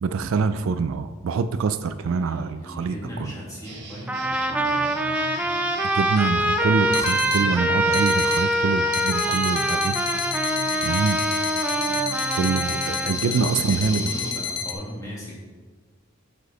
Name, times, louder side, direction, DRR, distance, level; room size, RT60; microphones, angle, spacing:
voice 1, 0.0-3.3 5.9-10.0 10.8-11.2 12.3-14.0, right 5 dB, 70° right, 11 dB, 0.4 m, -25 dB
voice 2, 2.1-5.2 13.0-15.4, equal, 15° left, -6 dB, 2.1 m, -37 dB
sound 1, 3.6-14.3, right 3 dB, 50° right, 1.2 m, -39 dB
Trumpet, 4.1-13.1, right 1 dB, 5° right, 0.4 m, -24 dB
sound 2, 6.4-6.5 6.9-7.4 7.9-8.4 8.9-14.7, left 7 dB, 65° left, 0.6 m, -30 dB
6.0 x 5.5 x 5.4 m, 1.4 s
head